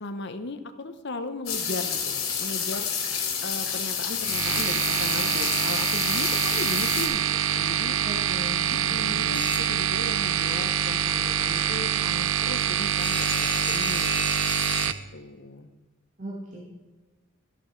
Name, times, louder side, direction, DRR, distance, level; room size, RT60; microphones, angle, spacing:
voice 1, 0.0-2.9 3.4-8.0 8.7-14.3 14.8-15.7, left 2 dB, 55° left, 9 dB, 0.8 m, -37 dB
sound 1, 1.5-7.1, left 7 dB, 75° left, 2.5 m, -29 dB
sound 2, 4.2-14.9, right 9 dB, 65° right, 0.4 m, -25 dB
voice 2, 8.0-9.2 16.2-16.6, equal, 35° right, -5 dB, 1.8 m, -38 dB
sound 3, 9.3-10.2 13.0-14.9, left 3 dB, 25° left, 1.1 m, -33 dB
13.0 x 6.2 x 4.6 m, 1.3 s
head